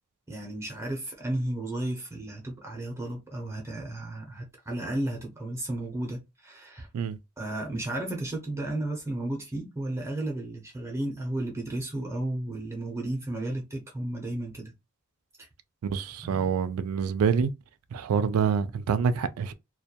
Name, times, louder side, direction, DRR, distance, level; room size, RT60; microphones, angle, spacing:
voice 1, 0.3-6.9 7.4-14.7 16.2-16.5, right 1 dB, 15° right, 0.6 m, -33 dB
voice 2, 15.8-17.5 17.9-19.5, right 6 dB, 80° right, 0.3 m, -26 dB
2.2 x 2.2 x 2.8 m
head